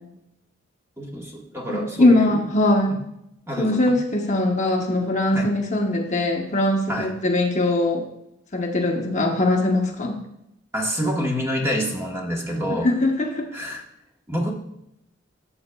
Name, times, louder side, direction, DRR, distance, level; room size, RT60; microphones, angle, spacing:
voice 1, 1.0-2.4 3.5-3.8 5.3-5.5 6.9-7.1 10.7-12.9 13.5-13.8 14.3-14.5, equal, 15° right, -1 dB, 1.1 m, -27 dB
voice 2, 1.7-3.1 3.6-8.0 8.5-10.1 12.8-13.6, left 2 dB, 35° left, 1 dB, 1.0 m, -21 dB
13.5 x 7.1 x 2.3 m, 0.81 s
head